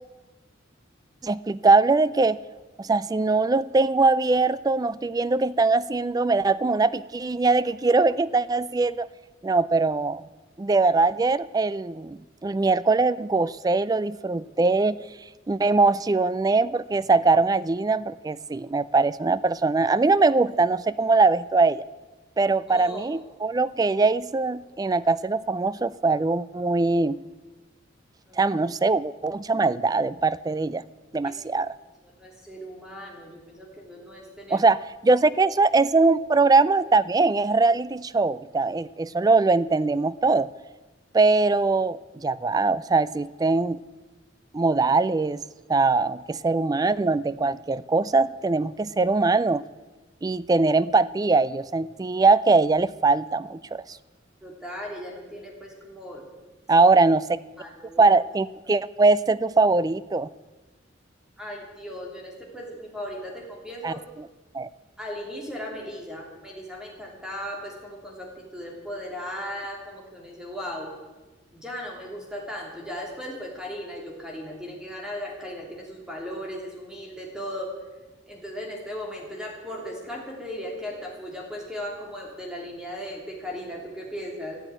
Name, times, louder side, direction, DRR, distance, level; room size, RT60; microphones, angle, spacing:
voice 1, 1.2-2.4 2.8-9.1 9.4-10.2 10.6-15.0 15.5-21.8 22.4-27.2 28.4-30.8 31.1-31.7 34.5-34.8 35.0-40.5 41.1-43.8 44.5-45.4 45.7-49.6 50.2-54.0 56.7-57.4 58.0-60.3 63.8-63.9 64.5-64.7, right 3 dB, 20° right, 18 dB, 0.3 m, -22 dB
voice 2, 22.4-23.3 28.3-28.4 31.2-31.4 32.0-34.6 54.4-56.3 57.6-58.2 61.4-64.0 65.0-70.9 71.5-77.7 78.3-84.6, equal, 5° right, -1 dB, 3.1 m, -37 dB
14.5 x 7.9 x 9.1 m, 1.2 s
head